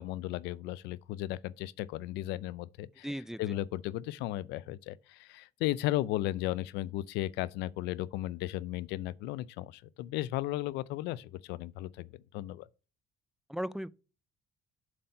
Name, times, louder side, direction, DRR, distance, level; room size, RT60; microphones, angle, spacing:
voice 1, 0.0-12.7, left 15 dB, 90° left, 0.5 m, -35 dB
voice 2, 3.0-3.5 13.5-13.9, equal, 5° right, 0.3 m, -36 dB
7.5 x 4.3 x 5.3 m
cardioid pair, 110°, 17 cm